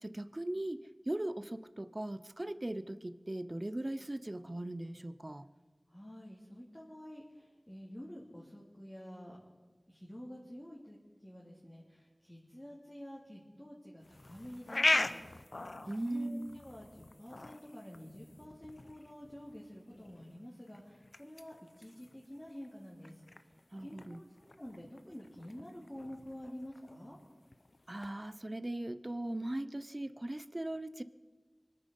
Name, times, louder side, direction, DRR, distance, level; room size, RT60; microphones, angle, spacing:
voice 1, 0.0-5.4 15.9-16.6 23.7-24.2 27.9-31.0, right 1 dB, 40° right, 13 dB, 0.7 m, -39 dB
voice 2, 5.9-9.4 9.9-15.7 16.0-23.1 23.8-27.2, equal, 20° left, -5 dB, 3.0 m, -49 dB
sound 1, 14.0-28.1, left 2 dB, 75° left, 0.7 m, -40 dB
24.5 x 9.3 x 5.4 m, 1.4 s
wide cardioid pair, 45°, 0 cm